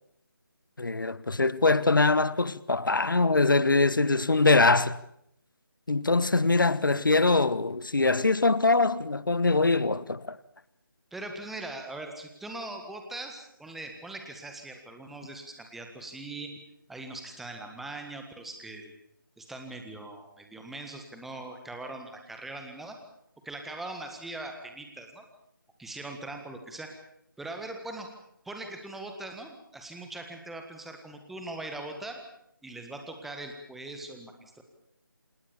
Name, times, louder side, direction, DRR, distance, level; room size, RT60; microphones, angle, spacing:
voice 1, 0.8-5.0 5.9-10.4, left 3 dB, 65° left, 1.3 m, -23 dB
voice 2, 11.1-16.5 16.9-18.9 19.4-23.0 23.4-25.2 25.8-26.9 27.4-28.1 28.4-32.2 32.6-34.6, right 2 dB, ahead, 1.7 m, -41 dB
27.5 x 19.0 x 7.1 m
figure-of-eight pair, 155°, 12 cm